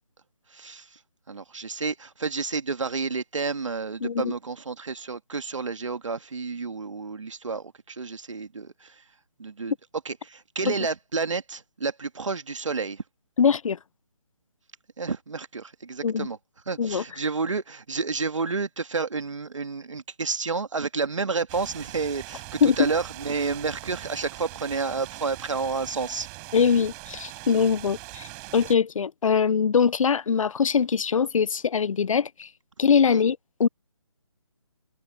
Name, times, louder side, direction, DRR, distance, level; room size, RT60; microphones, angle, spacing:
voice 1, 0.5-1.0 1.3-9.0 9.4-9.7 10.0-13.0 15.0-16.4 16.7-26.3 33.1-33.2, right 4 dB, 70° right, 2.0 m, -30 dB
voice 2, 4.0-4.3 13.4-13.8 16.0-16.3 16.8-17.0 22.6-22.8 26.5-28.3 28.5-32.5 32.8-33.7, left 6 dB, 85° left, 0.4 m, -22 dB
sound 1, 21.5-28.8, right 34 dB, 15° right, 3.9 m, -41 dB
hypercardioid pair, 170°, 16 cm